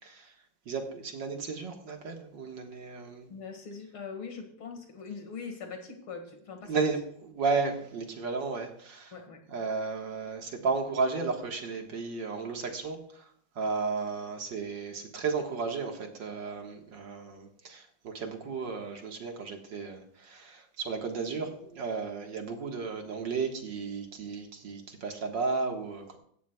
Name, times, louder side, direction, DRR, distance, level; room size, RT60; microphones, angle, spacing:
voice 1, 0.0-0.3 0.7-3.3 6.7-9.1 9.5-26.2, right 4 dB, 65° right, 3 dB, 2.3 m, -34 dB
voice 2, 3.3-6.9 9.1-9.4, left 5 dB, 85° left, 4 dB, 2.9 m, -42 dB
17.5 x 13.5 x 2.4 m, 0.66 s
omnidirectional pair, 2.2 m